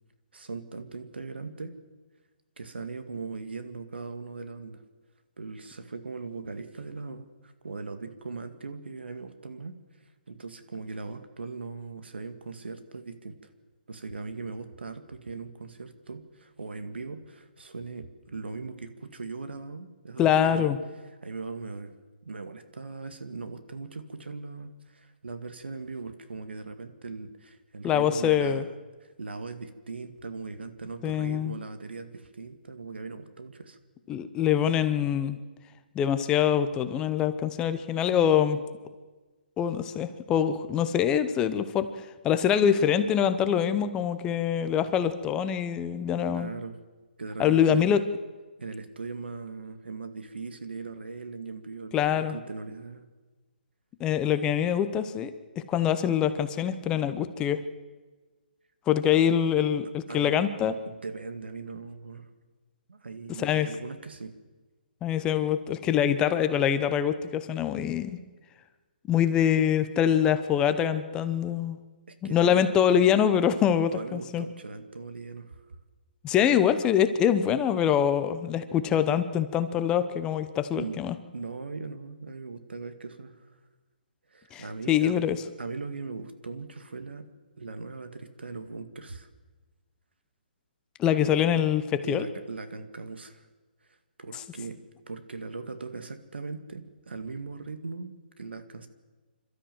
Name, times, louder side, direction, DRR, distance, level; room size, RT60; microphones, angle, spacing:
voice 1, 0.3-1.7 2.6-4.8 5.4-9.7 10.3-13.4 13.9-20.7 21.2-21.9 22.3-28.7 29.0-33.8 46.2-46.8 47.2-47.8 48.6-53.0 60.1-60.3 60.9-62.3 62.9-64.3 72.1-72.7 73.9-75.6 80.8-81.0 81.3-83.5 84.3-85.2 85.6-87.3 87.6-89.3 91.2-91.4 92.0-93.5 94.2-94.8 95.1-98.9, right 4 dB, 90° right, 9 dB, 2.1 m, -39 dB
voice 2, 20.2-20.8 27.8-28.6 31.0-31.5 34.1-35.4 35.9-38.6 39.6-46.5 47.4-48.0 51.9-52.3 54.0-55.3 55.7-57.6 58.9-60.7 63.4-63.7 65.0-68.2 69.1-71.8 72.3-74.4 76.2-81.1 84.5-85.4 91.0-92.3, left 9 dB, 15° left, 11 dB, 0.8 m, -24 dB
26.5 x 13.0 x 7.7 m, 1.3 s
hypercardioid pair, 160°, 6 cm